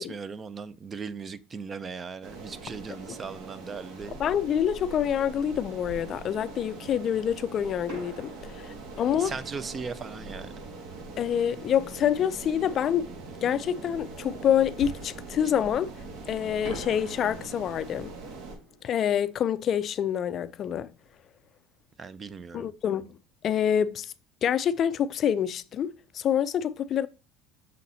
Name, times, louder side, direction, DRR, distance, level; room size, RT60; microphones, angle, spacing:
voice 1, 0.0-4.2 9.2-10.5 22.0-22.7, right 5 dB, 25° right, 0.4 m, -38 dB
sound 1, 2.2-18.6, right 3 dB, 70° right, 1.6 m, -42 dB
voice 2, 4.2-9.3 11.2-13.1 13.4-15.9 16.3-18.1 18.8-20.9 22.5-23.1 23.4-24.1 24.4-27.1, left 9 dB, 40° left, 0.4 m, -27 dB
Fireworks, 5.9-7.0 7.9-11.3 14.8-16.2 16.6-21.2 21.4-21.5 22.1-22.3, right 1 dB, 85° right, 3.8 m, -46 dB
6.4 x 4.1 x 4.1 m
cardioid pair, 130°, 0 cm